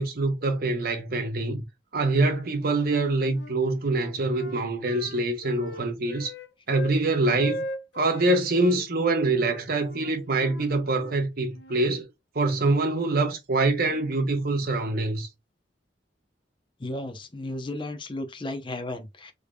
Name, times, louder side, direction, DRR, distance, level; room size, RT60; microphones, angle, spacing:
voice 1, 0.0-1.6 1.9-6.3 6.7-7.6 7.9-12.1 12.3-15.3, right 2 dB, 55° right, 0.8 m, -25 dB
Wind instrument woodwind instrument, 2.7-3.6 3.9-7.0 7.3-8.8 9.4-11.9, left 1 dB, 65° left, 0.8 m, -39 dB
voice 2, 16.8-19.3, left 1 dB, 25° left, 0.7 m, -34 dB
3.6 x 3.5 x 2.2 m
head